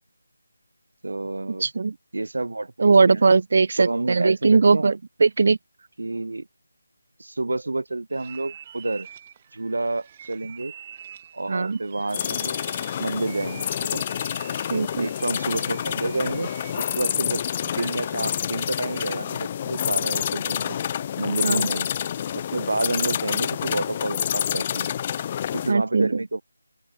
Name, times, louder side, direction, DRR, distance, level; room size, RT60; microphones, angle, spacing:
voice 1, 1.0-1.7 2.1-3.2 3.8-5.0 6.0-6.5 7.2-9.1 9.5-10.7 11.3-12.6 13.0-14.0 14.9-16.5 16.8-17.4 17.8-20.8 21.2-21.9 22.3-24.9 25.5-26.4, right 2 dB, 75° right, 2.6 m, -29 dB
voice 2, 1.6-1.9 2.8-5.6 11.5-11.8 14.7-15.1 21.4-21.6 25.7-26.2, right 4 dB, 45° right, 0.8 m, -19 dB
sound 1, 8.1-19.3, right 9 dB, 20° right, 3.5 m, -45 dB
sound 2, 12.1-25.7, left 9 dB, 20° left, 2.1 m, -28 dB
open air
figure-of-eight pair, 170°, 0 cm